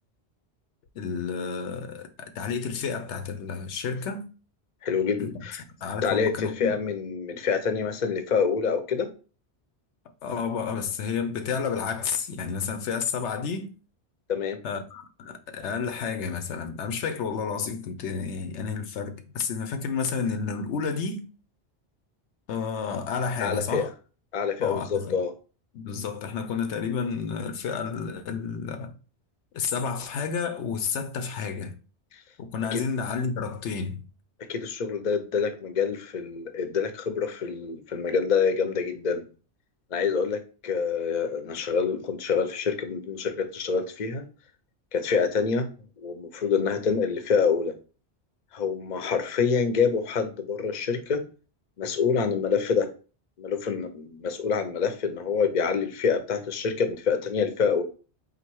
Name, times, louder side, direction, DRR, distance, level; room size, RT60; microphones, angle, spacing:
voice 1, 0.9-4.3 5.2-5.4 5.8-6.8 10.2-13.7 14.6-21.2 22.5-23.9 24.6-25.2 25.7-29.0 29.5-31.7 32.4-34.0, left 6 dB, 85° left, 0.9 m, -31 dB
voice 2, 4.8-5.6 6.0-9.1 14.3-14.6 23.4-23.9 24.3-25.3 32.7-32.8 34.5-39.3 39.9-44.2 44.9-45.7 46.0-47.7 48.5-51.2 51.8-52.9 53.4-57.8, left 6 dB, 45° left, 0.7 m, -26 dB
4.0 x 2.6 x 4.5 m
omnidirectional pair, 1.1 m